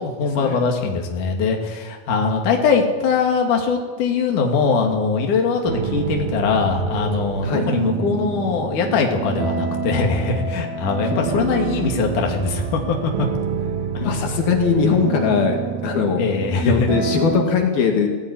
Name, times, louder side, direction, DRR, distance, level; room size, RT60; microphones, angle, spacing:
voice 1, 0.0-13.3 13.9-14.1 16.2-16.9, left 5 dB, 60° left, 2 dB, 3.7 m, -21 dB
sound 1, 5.6-17.5, right 7 dB, 75° right, 3.4 m, -27 dB
voice 2, 14.0-15.6 15.8-16.2 16.6-18.1, left 6 dB, 75° left, 3 dB, 4.0 m, -20 dB
19.0 x 16.5 x 9.7 m, 1.4 s
omnidirectional pair, 4.4 m